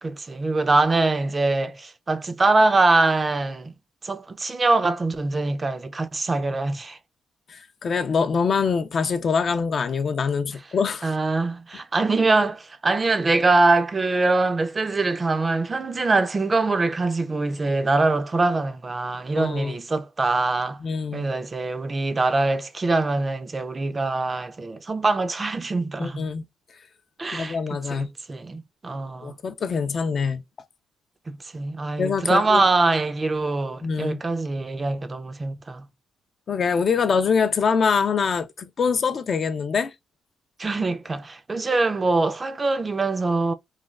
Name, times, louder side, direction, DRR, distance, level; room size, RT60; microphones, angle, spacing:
voice 1, 0.0-3.7 4.0-7.0 11.0-20.8 21.1-26.2 27.2-27.6 27.9-29.4 31.3-35.8 40.6-43.5, right 3 dB, 30° right, 0.4 m, -23 dB
voice 2, 7.5-11.2 19.4-19.7 20.8-21.3 26.0-26.4 27.3-28.1 29.2-30.4 32.0-32.6 33.8-34.2 36.5-39.9, left 5 dB, 50° left, 0.3 m, -24 dB
3.1 x 2.2 x 2.3 m
cardioid pair, 90°, 0 cm